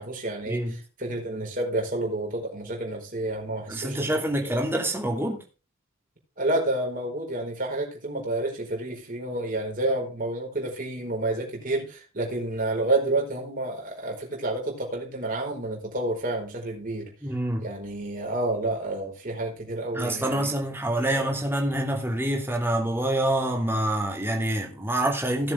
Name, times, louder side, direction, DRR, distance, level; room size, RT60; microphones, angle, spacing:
voice 1, 0.0-4.1 4.4-4.6 6.4-17.1 17.6-20.5 21.1-21.3, right 2 dB, 40° right, 4.6 m, -29 dB
voice 2, 3.7-5.4 17.2-17.6 19.9-25.5, right 1 dB, 10° right, 2.8 m, -26 dB
17.5 x 7.5 x 3.5 m
head